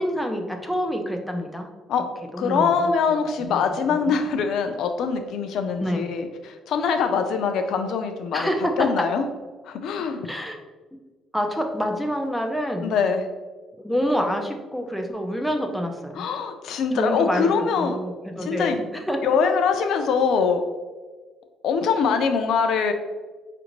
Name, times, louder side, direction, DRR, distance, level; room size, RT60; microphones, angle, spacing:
voice 1, 0.0-1.7 2.3-3.2 3.5-4.2 5.8-6.1 8.3-8.9 10.2-10.6 11.3-12.9 13.8-16.3 16.9-19.2, equal, ahead, 2 dB, 0.4 m, -27 dB
voice 2, 2.4-8.5 8.8-9.3 9.6-10.3 12.8-13.2 16.2-18.0 18.4-18.8 19.2-20.7 21.6-22.9, left 5 dB, 70° left, 7 dB, 0.4 m, -23 dB
5.0 x 2.5 x 3.0 m, 1.3 s
cardioid pair, 150°, 0 cm